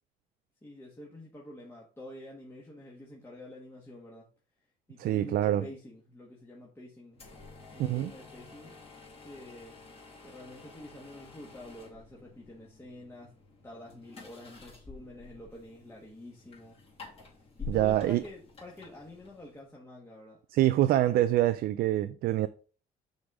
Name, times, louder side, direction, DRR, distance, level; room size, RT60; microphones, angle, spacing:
voice 1, 0.6-4.3 4.9-7.2 7.7-8.8 9.2-9.8 10.2-13.4 13.6-16.8 17.6-20.4, left 1 dB, 15° left, 1.5 m, -48 dB
voice 2, 5.0-5.6 7.8-8.1 17.7-18.2 20.5-22.5, right 13 dB, 65° right, 0.4 m, -25 dB
sound 1, 7.1-19.7, left 4 dB, 35° left, 2.8 m, -49 dB
6.2 x 3.8 x 4.8 m
cardioid pair, 110°, 17 cm